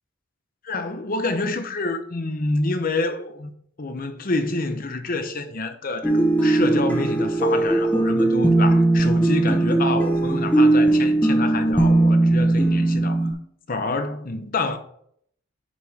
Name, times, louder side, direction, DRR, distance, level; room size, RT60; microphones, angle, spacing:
voice 1, 0.6-3.5 3.8-13.4 13.7-14.8, left 2 dB, 40° left, 0.8 m, -27 dB
sound 1, 6.0-13.3, right 2 dB, 5° left, 1.0 m, -19 dB
9.6 x 5.4 x 3.5 m
head